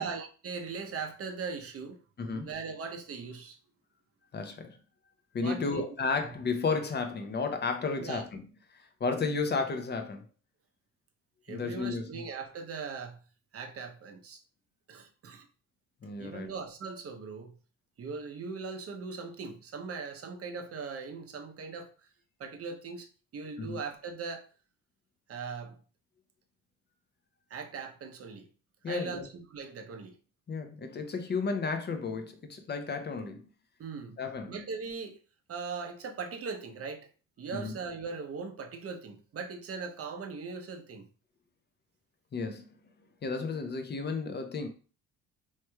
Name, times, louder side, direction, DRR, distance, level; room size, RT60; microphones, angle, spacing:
voice 1, 0.0-2.0 2.3-3.6 5.4-5.8 6.2-6.3 8.0-8.2 11.5-13.2 13.5-14.4 14.9-15.5 16.2-17.6 18.0-21.9 22.4-23.1 23.3-24.5 25.3-25.8 27.5-28.5 28.9-29.2 29.5-30.1 33.8-34.2 34.5-35.2 35.5-37.1 37.4-41.1, right 5 dB, 40° right, 0.7 m, -39 dB
voice 2, 2.2-2.5 4.3-4.8 5.3-8.4 8.7-10.2 11.5-12.1 16.0-16.5 23.6-23.8 28.8-29.2 30.5-33.5 34.2-34.6 37.5-37.7 42.3-42.7 43.2-44.7, left 4 dB, 30° left, 0.6 m, -33 dB
3.1 x 3.1 x 2.3 m
supercardioid pair, 70°, 36 cm